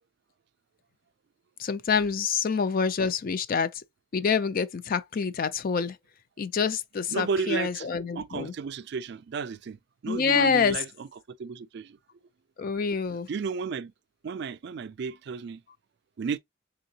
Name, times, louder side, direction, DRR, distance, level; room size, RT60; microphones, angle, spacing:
voice 1, 1.6-3.8 4.1-6.0 6.4-8.5 10.1-10.8 12.6-13.3, left 5 dB, 45° left, 0.4 m, -26 dB
voice 2, 7.1-7.9 8.1-12.0 13.3-13.9 14.2-15.6 16.2-16.4, right 5 dB, 55° right, 0.3 m, -33 dB
3.8 x 3.6 x 2.7 m
head